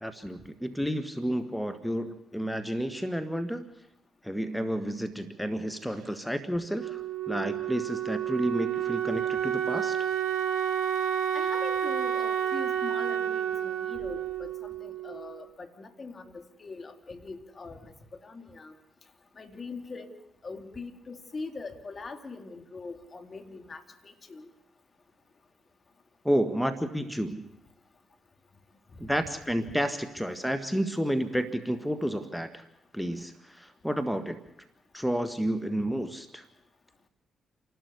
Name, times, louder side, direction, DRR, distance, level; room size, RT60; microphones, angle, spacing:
voice 1, 0.0-3.6 4.2-10.0 26.2-27.4 29.0-32.6 32.9-34.4 34.9-36.4, equal, 5° left, 12 dB, 1.7 m, -31 dB
Wind instrument woodwind instrument, 6.8-15.4, right 9 dB, 75° right, 1.0 m, -30 dB
voice 2, 11.3-18.7 19.4-20.1 20.4-24.5, left 3 dB, 45° left, 7 dB, 2.5 m, -42 dB
28.5 x 12.0 x 8.3 m, 0.84 s
hypercardioid pair, 45°, 0 cm